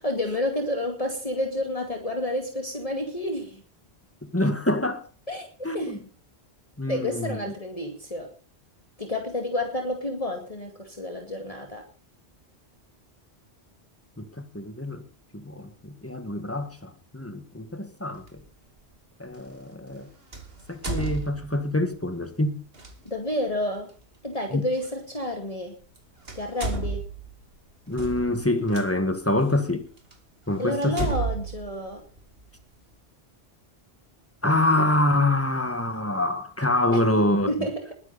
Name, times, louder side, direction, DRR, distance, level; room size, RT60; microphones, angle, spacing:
voice 1, 0.0-3.6 5.3-5.5 5.7-6.0 6.9-8.3 9.0-11.8 23.0-23.9 24.2-25.7 26.3-27.1 30.6-32.0 36.9-37.0 37.5-37.9, left 1 dB, 35° left, 2.5 m, -30 dB
voice 2, 4.2-5.1 5.6-6.0 6.8-7.4 14.2-15.0 15.3-18.4 19.2-20.1 20.7-22.6 24.5-24.6 27.9-29.9 30.5-31.1 34.4-37.5, left 1 dB, 10° left, 1.9 m, -26 dB
sound 1, 18.2-18.4 20.3-21.8 22.7-22.9 24.8-24.9 25.8-26.0 26.2-28.8 29.5-29.6 30.1-30.2 30.8-32.6, right 4 dB, 60° right, 2.8 m, -32 dB
21.0 x 11.0 x 4.2 m
omnidirectional pair, 1.1 m